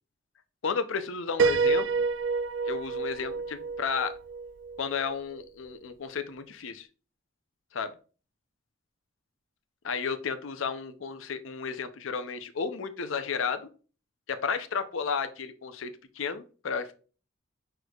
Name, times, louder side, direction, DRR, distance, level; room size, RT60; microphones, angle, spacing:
voice 1, 0.6-2.1 2.7-4.1 4.8-6.9 7.7-7.9 9.8-13.7 14.3-16.9, left 5 dB, 80° left, 11 dB, 0.5 m, -33 dB
Piano, 1.4-5.1, right 4 dB, 65° right, 0.4 m, -28 dB
6.0 x 3.3 x 2.3 m, 0.36 s
head